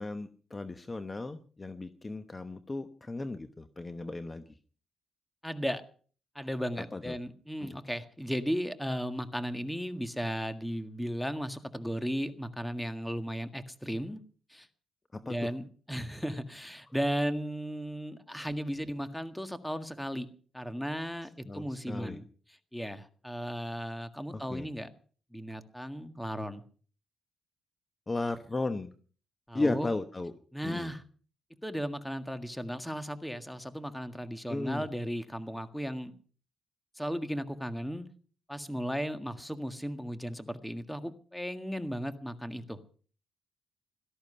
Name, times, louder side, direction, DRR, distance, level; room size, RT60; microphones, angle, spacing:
voice 1, 0.0-4.5 6.9-7.1 7.6-7.8 15.1-15.5 21.5-22.2 24.3-24.7 28.1-28.9 29.5-30.3 30.6-30.9 34.5-34.8, left 2 dB, 25° left, 10 dB, 1.0 m, -35 dB
voice 2, 5.4-5.8 6.4-14.2 14.5-14.7 15.2-20.3 20.5-22.2 22.7-24.9 25.3-26.6 29.5-29.9 30.5-31.0 31.6-36.1 37.0-38.1 38.5-42.8, equal, 5° left, 9 dB, 1.7 m, -35 dB
17.5 x 13.5 x 5.6 m, 0.43 s
cardioid pair, 90°, 0 cm